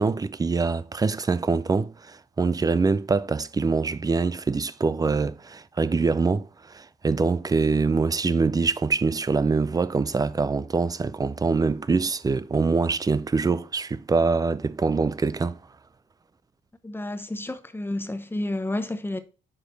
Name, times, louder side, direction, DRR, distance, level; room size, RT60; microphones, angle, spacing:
voice 1, 0.0-15.6, right 4 dB, 20° right, 0.4 m, -24 dB
voice 2, 16.8-19.2, left 1 dB, 10° left, 0.8 m, -30 dB
6.4 x 4.9 x 3.9 m
cardioid pair, 90°, 20 cm